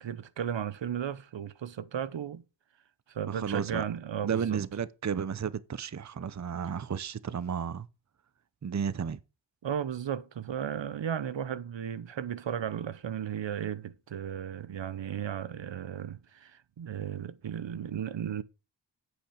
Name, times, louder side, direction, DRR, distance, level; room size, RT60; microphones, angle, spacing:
voice 1, 0.0-2.4 3.1-4.6 9.6-18.4, right 9 dB, 90° right, 0.8 m, -35 dB
voice 2, 3.3-3.8 4.2-7.9 8.6-9.2, right 7 dB, 40° right, 0.6 m, -33 dB
8.7 x 8.1 x 5.0 m
wide cardioid pair, 95°, 43 cm